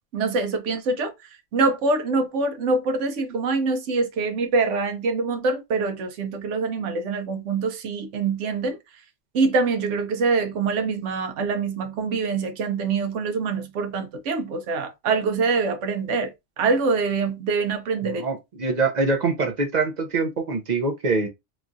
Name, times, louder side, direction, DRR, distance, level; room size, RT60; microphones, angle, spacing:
voice 1, 0.1-1.1 1.5-8.8 9.3-16.3 16.6-18.2, right 4 dB, 80° right, 1.0 m, -24 dB
voice 2, 18.0-21.3, right 3 dB, 50° right, 0.5 m, -24 dB
3.0 x 2.3 x 2.5 m
omnidirectional pair, 1.2 m